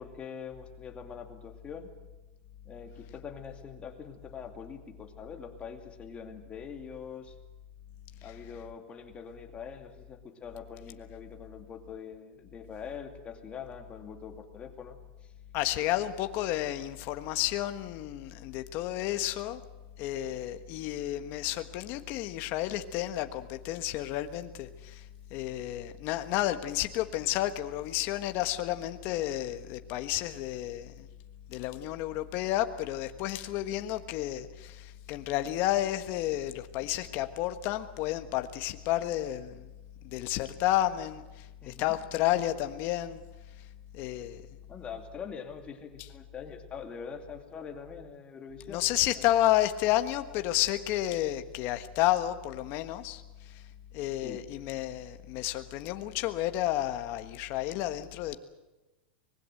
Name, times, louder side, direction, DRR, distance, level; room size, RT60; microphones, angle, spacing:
voice 1, 0.0-1.9 2.6-7.3 8.2-15.3 41.6-41.9 44.7-49.3 54.2-54.4, left 6 dB, 20° left, 4 dB, 2.6 m, -44 dB
voice 2, 15.5-19.6 20.0-25.0 25.3-31.1 31.5-39.7 40.0-43.2 43.9-44.4 48.7-53.2 53.5-53.6 53.9-58.4, left 14 dB, 40° left, 8 dB, 1.4 m, -31 dB
25.0 x 20.0 x 7.9 m, 1.1 s
supercardioid pair, 150°, 6 cm